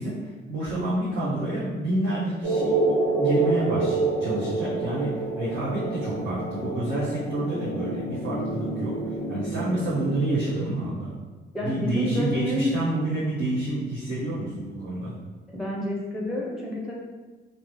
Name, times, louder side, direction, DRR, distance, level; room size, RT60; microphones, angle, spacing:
voice 1, 0.0-11.1 11.6-15.1, right 1 dB, 75° right, -9 dB, 0.8 m, -28 dB
sound 1, 2.4-10.1, right 3 dB, 25° right, 0.9 m, -28 dB
voice 2, 11.5-12.7 15.5-16.9, left 1 dB, ahead, -3 dB, 0.5 m, -29 dB
2.7 x 2.0 x 3.1 m, 1.2 s
cardioid pair, 90°, 20 cm